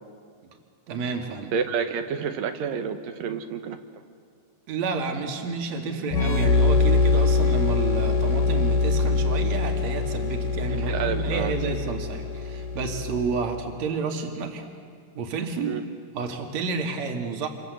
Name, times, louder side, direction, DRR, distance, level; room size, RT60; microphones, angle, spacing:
voice 1, 0.9-1.5 4.7-14.6 15.1-15.8 16.1-17.5, right 4 dB, 50° right, 3 dB, 3.2 m, -30 dB
voice 2, 1.5-3.8 10.9-11.5 15.6-15.8, right 7 dB, 70° right, 8 dB, 2.8 m, -29 dB
sound 1, 6.1-13.6, left 3 dB, 65° left, 3.5 m, -23 dB
28.0 x 23.5 x 8.0 m, 2.2 s
omnidirectional pair, 4.3 m